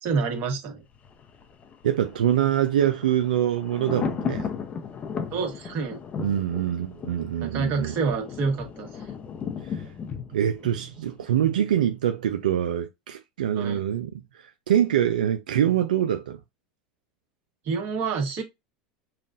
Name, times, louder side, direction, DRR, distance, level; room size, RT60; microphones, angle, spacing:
voice 1, 0.0-0.8 5.3-6.0 7.4-9.1 13.5-13.8 17.6-18.4, right 5 dB, 50° right, 1.5 m, -28 dB
Thunder, 0.9-11.8 12.1-12.2, left 6 dB, 35° left, 0.7 m, -36 dB
voice 2, 1.8-4.5 6.2-7.9 9.6-9.9 10.3-16.4, right 10 dB, 85° right, 0.4 m, -25 dB
5.6 x 2.4 x 2.5 m
hypercardioid pair, 100°, 4 cm